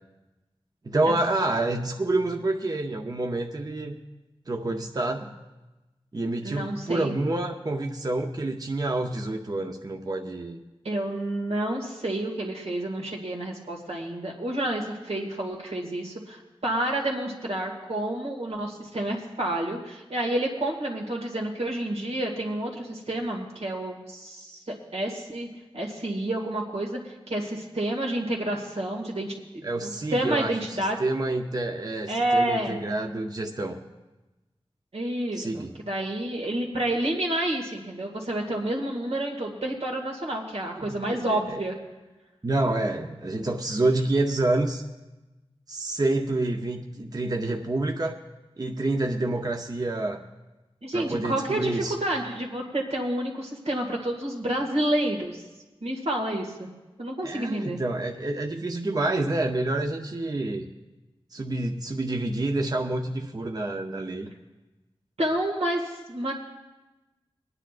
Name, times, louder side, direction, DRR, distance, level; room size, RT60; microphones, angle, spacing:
voice 1, 0.8-4.0 4.5-5.3 6.1-10.6 29.6-33.8 35.3-35.7 40.8-41.6 42.4-44.8 45.7-48.2 48.6-50.2 50.9-51.9 57.2-60.7 61.3-64.3, right 2 dB, 40° right, 3 dB, 0.7 m, -28 dB
voice 2, 6.4-7.1 10.8-25.5 25.7-31.0 32.1-32.8 34.9-41.7 50.8-55.4 55.8-56.7 57.0-57.8 65.2-66.3, right 1 dB, 85° right, -1 dB, 2.0 m, -29 dB
25.5 x 9.8 x 2.5 m, 1.1 s
wide cardioid pair, 70°, 10 cm